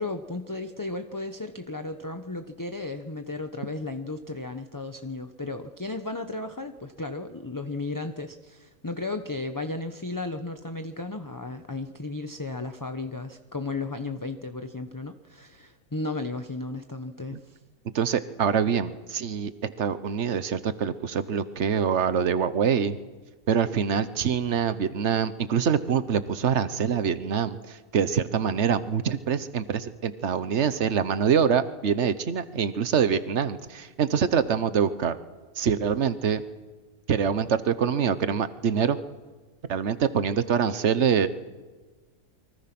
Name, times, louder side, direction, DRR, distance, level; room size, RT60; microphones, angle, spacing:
voice 1, 0.0-17.6, left 2 dB, 15° left, 7 dB, 0.7 m, -34 dB
voice 2, 17.9-23.0 23.5-27.6 27.9-35.2 35.6-36.4 37.1-39.0 39.7-41.3, right 7 dB, 50° right, 13 dB, 1.3 m, -25 dB
29.5 x 24.0 x 6.1 m, 1.3 s
omnidirectional pair, 1.6 m